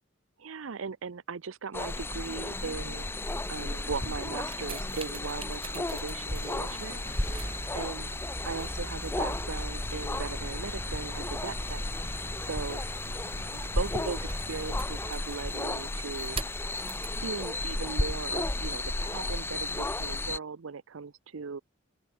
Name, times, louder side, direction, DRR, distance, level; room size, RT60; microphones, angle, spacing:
voice 1, 0.4-3.1 3.5-7.1 7.7-8.1 8.4-12.8 13.3-16.4 17.2-21.6, right 5 dB, 85° right, 0.6 m, -38 dB
sound 1, 1.7-20.4, left 2 dB, 10° left, 0.6 m, -34 dB
sound 2, 4.2-17.2 18.0-18.1, right 2 dB, 30° right, 1.7 m, -42 dB
open air
head